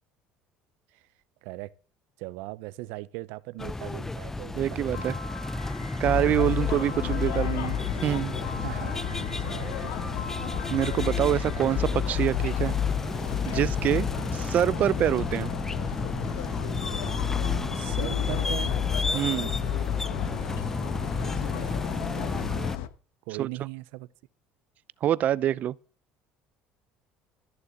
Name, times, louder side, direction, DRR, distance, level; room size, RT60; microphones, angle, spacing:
voice 1, 1.4-1.7 2.2-5.9 8.6-10.1 17.7-18.8 23.3-24.1, right 20 dB, 80° right, 0.9 m, -39 dB
sound 1, 3.6-22.8, left 2 dB, 10° left, 0.6 m, -33 dB
voice 2, 4.5-5.1 6.0-8.3 10.7-12.8 13.5-14.1 14.3-15.5 19.1-19.5 23.4-23.5 25.0-25.7, right 11 dB, 50° right, 0.6 m, -26 dB
Piano, 4.9-11.9, left 3 dB, 55° left, 3.2 m, -44 dB
sound 2, 6.0-22.9, left 10 dB, 90° left, 1.2 m, -31 dB
14.0 x 6.8 x 8.7 m
cardioid pair, 110°, 3 cm